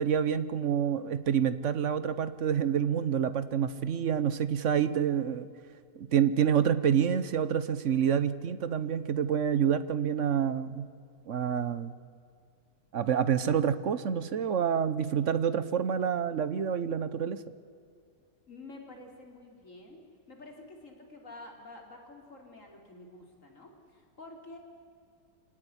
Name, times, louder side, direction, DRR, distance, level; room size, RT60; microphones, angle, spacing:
voice 1, 0.0-5.5 6.0-10.9 11.3-11.9 12.9-17.4, right 8 dB, 50° right, 14 dB, 1.1 m, -28 dB
voice 2, 18.5-24.6, left 2 dB, 45° left, 2 dB, 3.8 m, -49 dB
25.5 x 18.0 x 10.0 m, 2.4 s
omnidirectional pair, 1.9 m